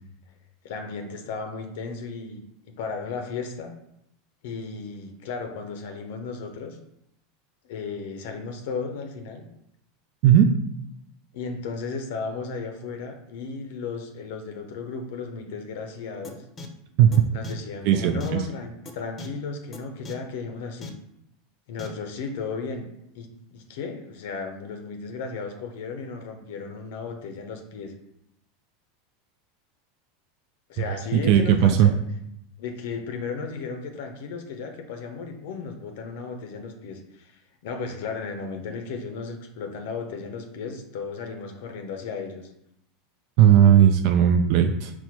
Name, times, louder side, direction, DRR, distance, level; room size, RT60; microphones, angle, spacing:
voice 1, 0.6-3.7 4.4-6.8 7.7-9.5 11.3-16.4 17.3-21.0 21.7-22.9 23.1-27.9 30.7-32.0 32.6-42.5, left 4 dB, 70° left, 5 dB, 0.6 m, -35 dB
sound 1, 16.2-16.3 16.6-16.7 17.1-17.2 17.4-17.5 18.2-18.3 18.9-19.0 19.2-19.3 19.7-19.8 20.0-20.1 20.8-20.9 21.8-21.9, left 3 dB, 30° left, 0.6 m, -38 dB
voice 2, 17.9-18.4 31.1-31.9 43.4-44.9, right 10 dB, 60° right, 6 dB, 0.3 m, -17 dB
4.2 x 2.1 x 4.4 m, 0.79 s
hypercardioid pair, 100°, 0 cm